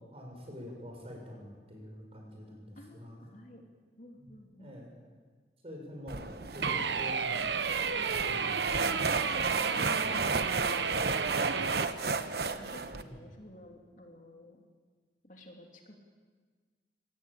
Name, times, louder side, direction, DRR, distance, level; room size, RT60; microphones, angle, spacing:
voice 1, 0.1-3.2 4.2-4.3 4.6-4.9 5.6-7.5 8.2-8.8 13.0-13.1, left 1 dB, 35° right, 0 dB, 6.9 m, -46 dB
voice 2, 2.8-3.7 4.0-4.7 9.5-10.4 12.4-14.6 15.2-16.0, left 1 dB, 45° left, 1 dB, 3.0 m, -52 dB
sound 1, 6.1-13.0, right 4 dB, 60° right, 1.1 m, -34 dB
sound 2, 6.6-11.9, right 6 dB, 85° right, 1.1 m, -31 dB
25.0 x 18.5 x 8.5 m, 1.5 s
head